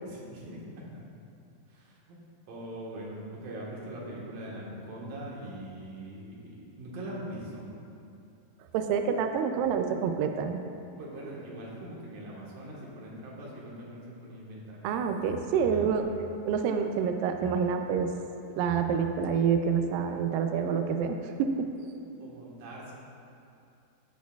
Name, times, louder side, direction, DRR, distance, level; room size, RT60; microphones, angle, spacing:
voice 1, 0.0-0.6 0.9-1.0 1.7-2.2 2.5-7.6 11.0-15.0 15.4-16.1 22.2-22.9, right 1 dB, 65° right, -5 dB, 2.9 m, -42 dB
voice 2, 8.7-10.6 14.8-16.1 16.5-18.1 18.6-21.7, right 6 dB, 90° right, 6 dB, 2.0 m, -27 dB
12.5 x 8.2 x 2.3 m, 2.5 s
omnidirectional pair, 4.6 m